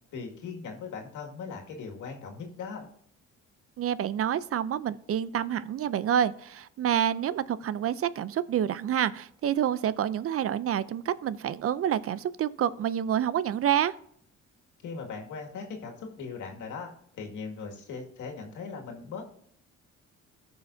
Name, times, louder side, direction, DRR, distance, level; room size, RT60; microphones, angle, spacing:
voice 1, 0.1-2.9 14.8-19.2, left 5 dB, 80° left, 1 dB, 2.0 m, -39 dB
voice 2, 3.8-13.9, right 10 dB, 50° right, 17 dB, 0.5 m, -28 dB
14.5 x 5.6 x 2.6 m, 0.66 s
cardioid pair, 90°, 30 cm